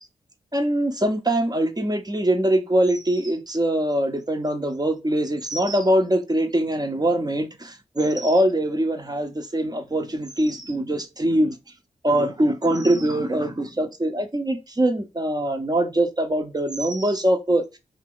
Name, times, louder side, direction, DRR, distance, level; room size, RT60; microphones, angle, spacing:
voice 1, 0.5-11.6 12.0-17.6, right 1 dB, 25° right, 0.7 m, -23 dB
2.7 x 2.4 x 3.6 m
cardioid pair, 40°, 16 cm